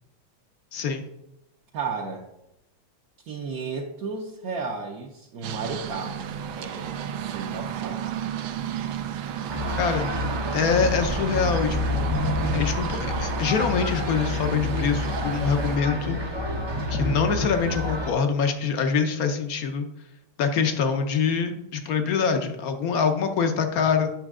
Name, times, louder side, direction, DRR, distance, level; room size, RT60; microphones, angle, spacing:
voice 1, 0.7-1.0 9.7-10.1 10.5-12.1 12.5-16.2 16.9-19.9 20.4-24.1, left 6 dB, 60° left, 7 dB, 1.0 m, -25 dB
voice 2, 1.7-2.3 3.2-6.9 7.3-8.1, right 4 dB, 60° right, 0 dB, 1.0 m, -33 dB
sound 1, 5.4-15.8, right 9 dB, 80° right, 1.5 m, -33 dB
sound 2, 9.5-18.1, left 1 dB, 35° right, 0.4 m, -28 dB
8.9 x 6.1 x 3.7 m, 0.87 s
omnidirectional pair, 2.2 m